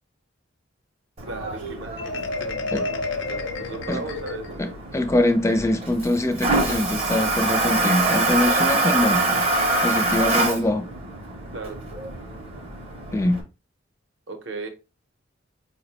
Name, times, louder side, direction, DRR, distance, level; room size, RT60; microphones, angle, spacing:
Toilet flush, 1.2-13.4, right 2 dB, 30° right, 0.6 m, -26 dB
voice 1, 1.3-4.7 11.5-11.8 14.3-14.7, right 3 dB, 65° right, 0.6 m, -36 dB
Marimba xylophone, 2.0-4.7, left 3 dB, 70° left, 0.5 m, -30 dB
voice 2, 4.6-9.5 9.8-10.9 13.1-13.4, left 1 dB, 15° left, 0.4 m, -23 dB
4.6 x 2.1 x 2.8 m
head